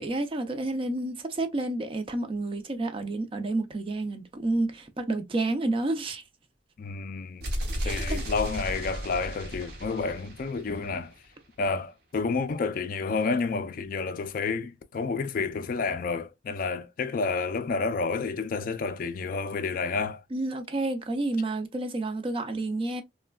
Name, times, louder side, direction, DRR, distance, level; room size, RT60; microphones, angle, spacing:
voice 1, 0.0-6.2 7.8-8.2 20.3-23.0, right 2 dB, 30° right, 0.4 m, -30 dB
voice 2, 6.8-7.5 7.8-11.1 11.6-20.2, left 4 dB, 50° left, 0.4 m, -30 dB
sound 1, 7.4-11.3, equal, 60° right, 0.7 m, -34 dB
3.2 x 2.2 x 2.2 m
head